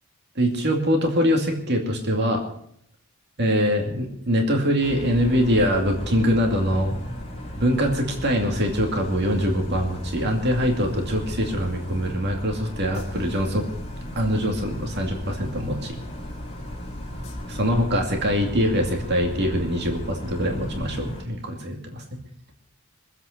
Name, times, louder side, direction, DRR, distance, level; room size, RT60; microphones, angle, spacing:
voice 1, 0.4-2.4 3.4-7.0 7.6-13.6 14.2-16.0 17.5-22.2, equal, 50° right, 2 dB, 2.4 m, -23 dB
sound 1, 4.8-21.2, left 1 dB, 30° left, 2.7 m, -35 dB
23.5 x 8.3 x 6.6 m, 0.69 s
head